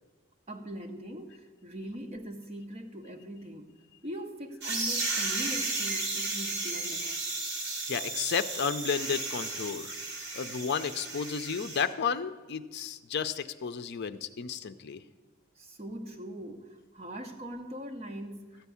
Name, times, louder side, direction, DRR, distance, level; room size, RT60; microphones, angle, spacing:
voice 1, 0.5-3.7 4.0-7.2 15.6-18.6, equal, 30° right, 1.0 m, -41 dB
sound 1, 4.6-11.8, right 3 dB, 60° right, 1.6 m, -34 dB
voice 2, 7.9-10.0 10.3-15.0, left 6 dB, 55° left, 0.5 m, -32 dB
13.5 x 4.6 x 8.4 m
head